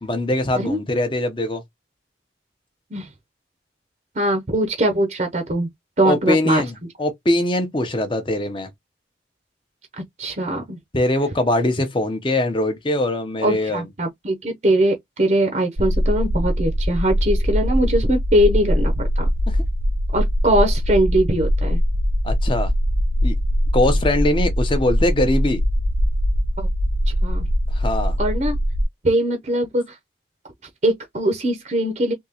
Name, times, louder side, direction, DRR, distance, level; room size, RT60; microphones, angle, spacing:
voice 1, 0.0-1.6 6.0-8.7 10.9-13.9 19.5-19.6 22.2-22.7 23.2-23.3 23.7-25.6 27.7-28.2, left 1 dB, 25° left, 0.8 m, -22 dB
voice 2, 4.1-5.7 6.0-6.6 10.2-10.8 13.4-19.3 20.1-21.8 26.6-26.7 27.1-27.4 28.2-28.6 29.0-30.0 30.8-32.1, right 1 dB, 40° right, 0.8 m, -21 dB
sound 1, 15.8-28.8, equal, 80° right, 0.8 m, -21 dB
3.6 x 2.9 x 2.9 m
head